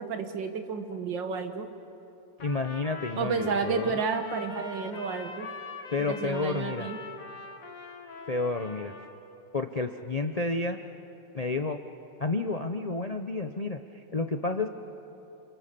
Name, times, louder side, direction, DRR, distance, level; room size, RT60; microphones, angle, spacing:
voice 1, 0.0-1.7 3.2-5.5 6.1-7.0, right 5 dB, 65° right, 7 dB, 2.1 m, -31 dB
voice 2, 2.4-4.0 5.9-6.9 8.3-8.9 9.5-10.8 11.3-11.8 12.2-14.7, left 3 dB, 80° left, 6 dB, 0.3 m, -30 dB
Trumpet, 2.4-9.1, left 3 dB, 45° left, 1.9 m, -43 dB
29.5 x 28.0 x 6.8 m, 2.9 s
omnidirectional pair, 2.2 m